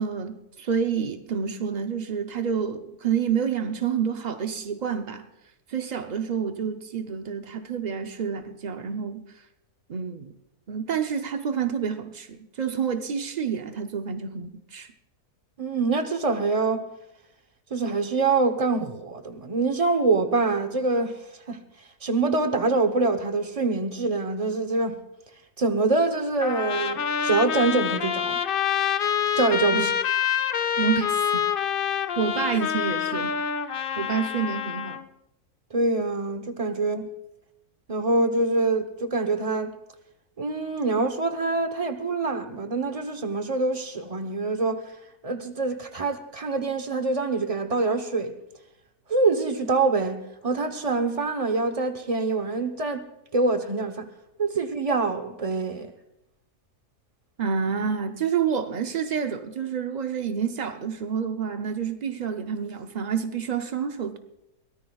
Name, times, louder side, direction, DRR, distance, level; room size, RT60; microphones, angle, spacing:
voice 1, 0.0-5.3 5.7-9.4 9.9-10.3 10.7-14.9 29.7-29.9 30.8-31.5 32.2-33.4 34.0-35.0 57.4-64.2, right 7 dB, 70° right, 0.4 m, -28 dB
voice 2, 15.6-16.9 17.7-21.2 21.5-21.6 22.0-25.0 25.6-28.4 29.4-29.9 35.7-37.1 37.9-39.7 40.4-44.9 45.2-48.3 49.1-53.0 53.3-54.1 54.4-55.9, right 3 dB, 30° right, 0.8 m, -25 dB
Trumpet, 26.4-35.1, left 8 dB, 70° left, 0.5 m, -26 dB
22.5 x 18.0 x 2.3 m
omnidirectional pair, 1.7 m